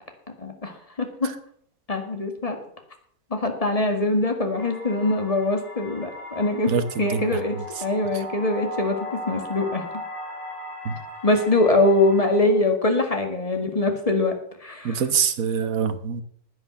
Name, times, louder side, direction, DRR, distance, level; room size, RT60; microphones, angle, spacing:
voice 1, 0.4-1.3 1.9-2.6 3.3-6.7 7.0-7.6 7.8-9.9 11.2-14.4 14.6-15.0, left 2 dB, 25° left, 5 dB, 1.9 m, -23 dB
sound 1, 4.6-12.5, left 1 dB, 45° left, 5.7 m, -38 dB
voice 2, 6.7-7.3 7.8-7.9 8.1-8.2 10.8-11.0 14.8-16.2, right 7 dB, 65° right, 11 dB, 1.5 m, -25 dB
10.0 x 9.6 x 7.0 m, 0.64 s
omnidirectional pair, 1.6 m